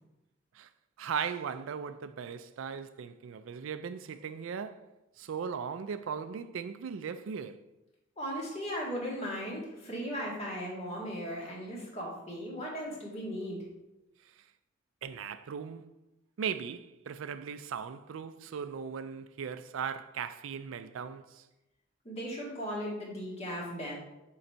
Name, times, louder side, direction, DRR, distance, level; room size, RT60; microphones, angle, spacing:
voice 1, 1.0-7.6 15.0-15.9 16.4-21.4, right 7 dB, 70° right, 0.4 m, -38 dB
voice 2, 8.2-13.6 22.1-24.0, equal, 35° left, 1.9 m, -37 dB
6.7 x 4.0 x 4.5 m
head